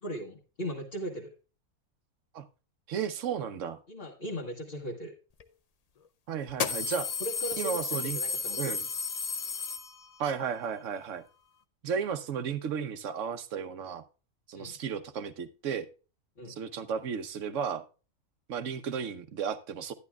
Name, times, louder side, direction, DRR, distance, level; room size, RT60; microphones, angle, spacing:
voice 1, 0.0-1.3 3.9-5.1 7.2-7.8 8.1-8.8 14.5-14.8 16.4-16.6, equal, 40° left, 1.4 m, -38 dB
voice 2, 2.9-3.8 6.3-7.1 7.6-8.2 8.6-8.8 10.2-11.2 11.8-14.0 14.5-15.9 16.5-17.8 18.5-19.9, right 7 dB, 65° right, 1.1 m, -34 dB
sound 1, 5.4-5.5 6.5-10.3, left 5 dB, 85° left, 0.3 m, -33 dB
11.0 x 11.0 x 2.2 m
omnidirectional pair, 1.5 m